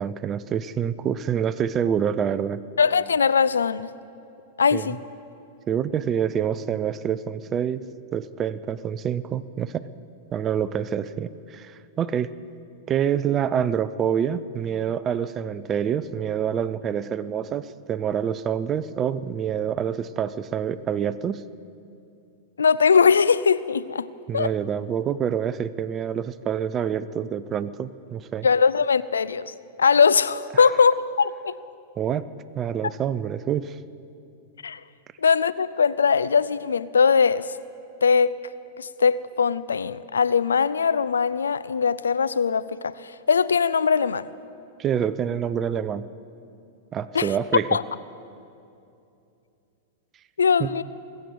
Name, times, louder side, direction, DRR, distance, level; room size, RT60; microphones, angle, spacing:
voice 1, 0.0-2.6 4.7-5.0 5.7-7.8 8.1-9.9 10.3-12.3 12.9-21.4 24.3-28.5 32.0-32.2 32.6-33.8 44.8-46.1 46.9-47.7 50.6-50.7, right 8 dB, 30° right, 0.5 m, -26 dB
voice 2, 2.8-3.9 4.6-5.0 22.6-24.1 24.3-24.5 28.4-31.6 34.6-34.8 35.2-37.5 38.0-38.4 38.8-44.3 47.1-47.3 47.7-47.8 50.4-50.8, left 6 dB, 85° left, 0.4 m, -21 dB
22.0 x 7.8 x 6.9 m
hypercardioid pair, 105°, 0 cm